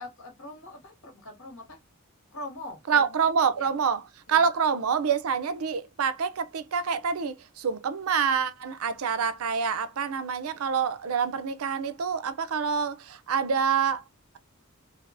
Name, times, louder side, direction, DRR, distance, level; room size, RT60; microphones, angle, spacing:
voice 1, 0.0-1.8 2.3-3.3 3.5-3.7 4.3-4.4, left 2 dB, 75° left, 1.6 m, -42 dB
voice 2, 2.9-14.0, right 6 dB, 90° right, 0.5 m, -27 dB
3.3 x 2.8 x 2.5 m
head